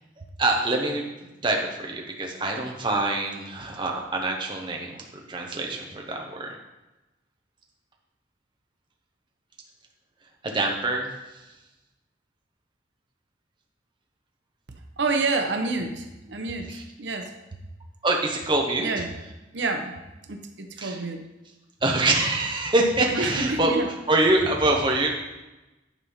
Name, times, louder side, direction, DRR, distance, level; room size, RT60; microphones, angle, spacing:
voice 1, 0.4-1.0 1.4-6.5 10.4-11.1 16.7-16.8 18.0-18.9 20.8-21.0 21.8-23.7 24.1-25.1, right 2 dB, 25° right, 1 dB, 1.0 m, -25 dB
voice 2, 15.0-17.3 18.8-19.1 19.5-20.0 20.3-21.2 23.1-23.9, right 3 dB, 80° right, 5 dB, 0.9 m, -28 dB
9.9 x 4.1 x 5.6 m, 1.0 s
head